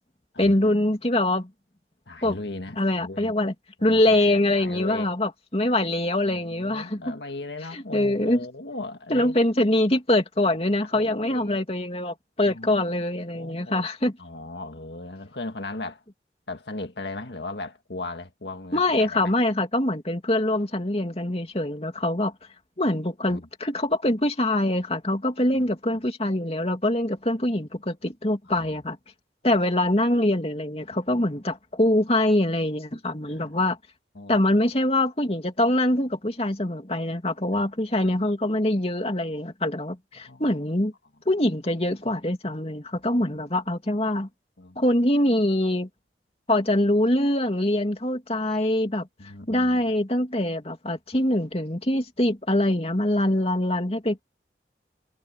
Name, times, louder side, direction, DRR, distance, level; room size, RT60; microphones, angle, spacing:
voice 1, 0.4-1.5 2.2-2.4 2.8-3.5 3.8-7.0 7.7-8.4 9.1-14.1 18.7-22.3 22.8-29.0 29.4-33.8 34.3-40.9 41.3-44.3 44.8-45.9 46.5-49.1 49.5-54.2, left 1 dB, 35° left, 2.7 m, -24 dB
voice 2, 2.1-3.3 3.8-5.1 6.2-9.4 10.9-11.6 12.5-12.9 13.3-13.9 14.2-16.0 16.5-19.3 23.3-23.5 28.5-28.7 29.5-29.6 33.3-33.5 34.2-34.5 37.5-37.6 38.0-38.1 40.2-40.6 44.6-44.8 49.2-49.8, left 2 dB, 75° left, 1.8 m, -37 dB
head